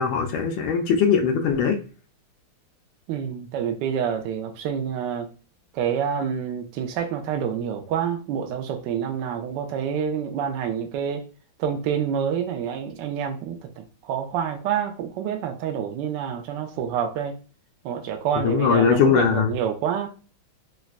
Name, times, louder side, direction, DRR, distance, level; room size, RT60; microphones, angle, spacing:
voice 1, 0.0-1.8 18.4-19.5, left 6 dB, 75° left, 1.3 m, -20 dB
voice 2, 3.1-5.3 5.7-11.2 11.6-17.4 17.8-20.1, right 8 dB, 75° right, 1.1 m, -27 dB
4.0 x 2.2 x 2.3 m
omnidirectional pair, 2.3 m